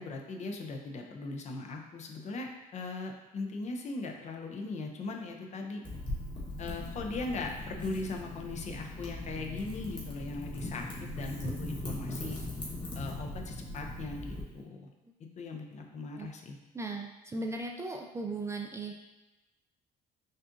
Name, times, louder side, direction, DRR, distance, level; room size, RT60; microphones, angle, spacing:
voice 1, 0.0-5.8 6.6-12.4 12.9-14.9 15.4-16.6, left 3 dB, 45° left, 2 dB, 0.6 m, -39 dB
Wind / Fire, 5.8-14.4, left 1 dB, 25° left, 1.2 m, -39 dB
voice 2, 16.7-18.9, right 2 dB, 15° right, 2 dB, 0.3 m, -37 dB
6.3 x 2.5 x 2.5 m, 1.0 s
cardioid pair, 110°, 17 cm